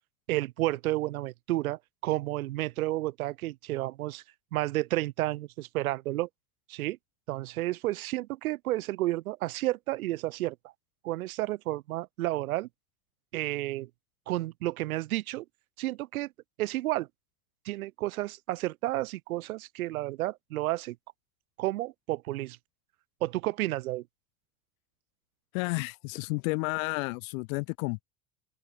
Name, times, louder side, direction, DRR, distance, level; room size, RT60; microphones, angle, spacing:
voice 1, 0.3-4.2 4.5-6.3 6.7-7.0 7.3-10.6 11.0-12.7 13.3-13.9 14.3-15.4 15.8-16.3 16.6-17.1 17.6-21.0 21.6-22.6 23.2-24.0, right 17 dB, 80° right, 2.9 m, -31 dB
voice 2, 25.5-28.0, left 29 dB, 70° left, 2.1 m, -31 dB
open air
hypercardioid pair, 90°, 42 cm